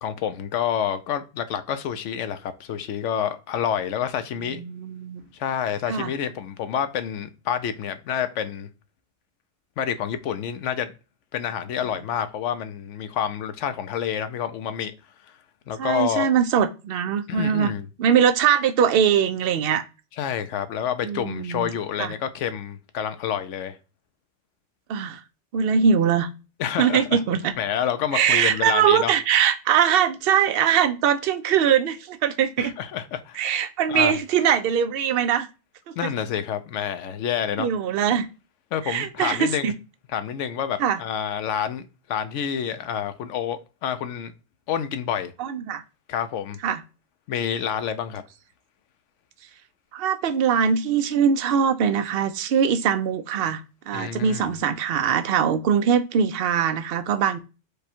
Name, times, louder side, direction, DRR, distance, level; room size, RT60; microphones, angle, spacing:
voice 1, 0.0-4.6 5.3-8.7 9.8-10.9 11.3-14.9 15.7-16.3 17.3-17.9 20.2-23.8 26.6-27.2 27.6-29.1 32.6-33.5 33.9-34.2 36.0-37.7 38.7-39.7 40.1-44.3 44.7-45.3 46.1-46.6 47.3-48.2 53.9-54.5, left 9 dB, 85° left, 1.0 m, -28 dB
voice 2, 4.4-5.2 5.9-6.1 15.8-17.7 18.0-19.8 21.0-21.7 22.0-22.1 24.9-25.2 25.5-26.3 26.8-27.5 28.1-32.7 33.4-35.5 36.0-36.1 37.6-38.3 38.9-39.7 40.8-41.0 45.4-45.8 46.6-46.8 49.9-57.4, right 8 dB, 60° right, 0.7 m, -22 dB
5.0 x 2.3 x 4.3 m
omnidirectional pair, 1.2 m